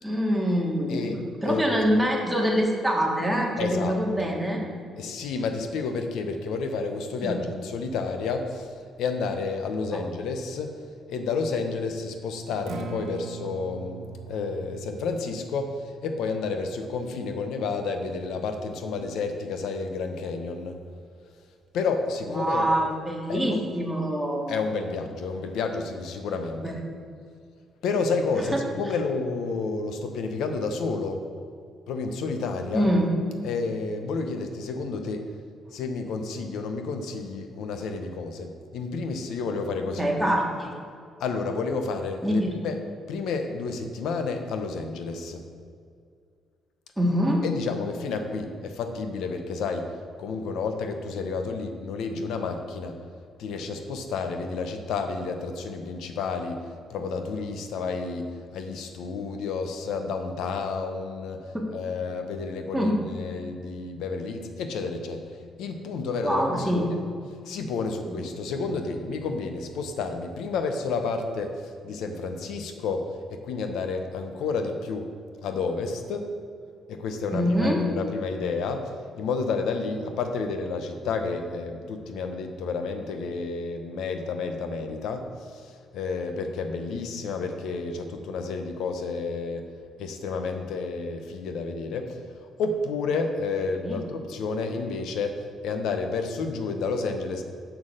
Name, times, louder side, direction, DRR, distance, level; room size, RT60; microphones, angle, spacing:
voice 1, 0.0-4.6 7.2-7.4 9.9-10.1 22.3-24.5 26.6-26.7 28.4-28.6 32.7-33.1 40.0-40.7 42.2-42.5 47.0-47.4 61.5-61.6 62.7-62.9 66.2-66.9 68.0-68.2 77.3-77.8 93.8-94.0, equal, 5° right, -1 dB, 1.8 m, -25 dB
voice 2, 0.9-1.8 3.6-4.0 4.2-4.4 5.0-10.7 11.1-15.7 16.0-20.7 21.7-22.7 23.3-23.4 24.5-26.8 27.8-31.2 31.9-32.9 33.4-35.2 35.7-40.1 41.2-42.8 43.1-45.4 47.4-49.9 50.2-53.0 53.4-56.6 56.9-61.4 61.7-65.2 65.6-67.0 67.5-71.5 71.8-75.1 75.4-76.3 76.9-85.2 85.5-89.6 90.0-92.2 92.6-97.4, left 4 dB, 85° left, 6 dB, 0.8 m, -30 dB
Acoustic guitar, 12.6-20.7, right 6 dB, 80° right, 0.9 m, -44 dB
6.9 x 5.6 x 6.5 m, 2.2 s
cardioid pair, 90°, 0 cm